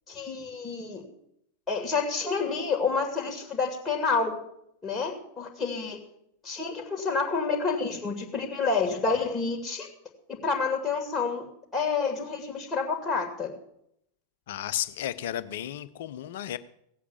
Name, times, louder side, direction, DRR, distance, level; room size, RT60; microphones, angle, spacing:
voice 1, 0.1-1.0 1.7-4.4 4.8-6.0 6.4-9.9 10.3-11.5 11.7-13.5, left 4 dB, 15° left, 1 dB, 2.5 m, -29 dB
voice 2, 14.5-16.6, left 12 dB, 55° left, 14 dB, 0.8 m, -33 dB
17.0 x 8.3 x 7.4 m, 0.75 s
figure-of-eight pair, 90°, 0 cm